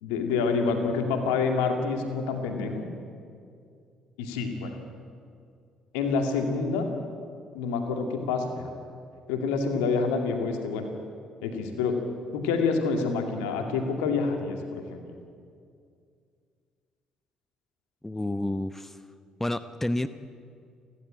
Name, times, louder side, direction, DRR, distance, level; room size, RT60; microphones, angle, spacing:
voice 1, 0.0-2.8 4.2-4.7 5.9-6.9 7.5-8.7 9.3-10.9 11.4-12.0 12.3-15.0, left 4 dB, 75° left, 5 dB, 2.3 m, -27 dB
voice 2, 18.0-19.0 19.4-20.1, left 1 dB, 10° left, 13 dB, 0.9 m, -29 dB
29.5 x 11.5 x 8.9 m, 2.3 s
figure-of-eight pair, 45°, 3 cm